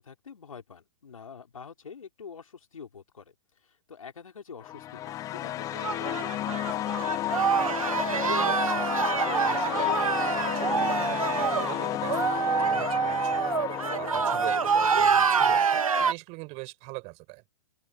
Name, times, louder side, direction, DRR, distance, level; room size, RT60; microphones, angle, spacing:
voice 1, 0.0-3.3 3.6-6.8 14.5-14.7, left 6 dB, 85° left, 4.9 m, -46 dB
sound 1, 4.6-15.7, left 13 dB, 20° left, 0.4 m, -32 dB
sound 2, 5.8-16.1, right 6 dB, 90° right, 1.7 m, -26 dB
voice 2, 7.6-9.9 10.3-13.6 14.0-17.4, right 28 dB, 40° right, 7.7 m, -41 dB
open air
hypercardioid pair, 120°, 17 cm